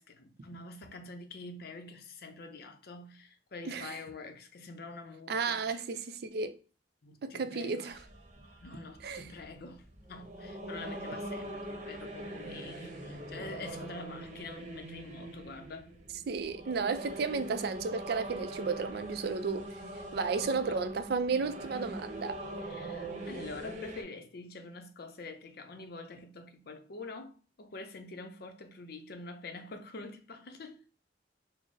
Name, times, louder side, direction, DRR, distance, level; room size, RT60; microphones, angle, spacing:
voice 1, 0.0-5.8 7.0-7.9 8.3-15.9 20.3-20.8 22.6-30.8, left 3 dB, 60° left, 0.6 m, -46 dB
voice 2, 5.3-6.5 7.2-8.0 9.0-9.3 16.3-19.7 20.1-22.4, right 4 dB, 60° right, 0.4 m, -33 dB
sound 1, 7.9-24.0, right 1 dB, 45° right, 0.8 m, -43 dB
3.8 x 2.0 x 3.6 m
head